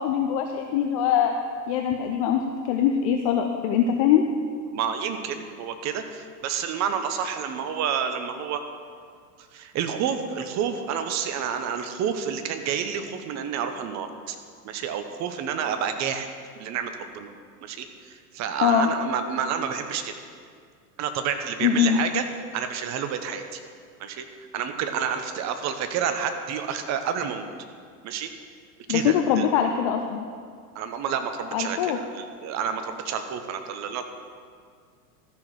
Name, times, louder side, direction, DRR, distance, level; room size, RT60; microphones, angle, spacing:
voice 1, 0.0-1.3 1.7-4.2 18.6-18.9 21.6-22.0 28.9-30.3 31.5-32.0, left 9 dB, 25° left, 4 dB, 0.3 m, -22 dB
voice 2, 4.7-8.6 9.5-14.4 14.6-16.3 16.6-17.3 17.6-20.1 21.0-22.2 22.5-23.6 24.0-24.2 24.5-27.5 28.0-28.3 28.9-29.4 30.7-34.1, right 7 dB, 35° right, 8 dB, 1.0 m, -29 dB
13.0 x 6.4 x 6.3 m, 2.1 s
hypercardioid pair, 95°, 49 cm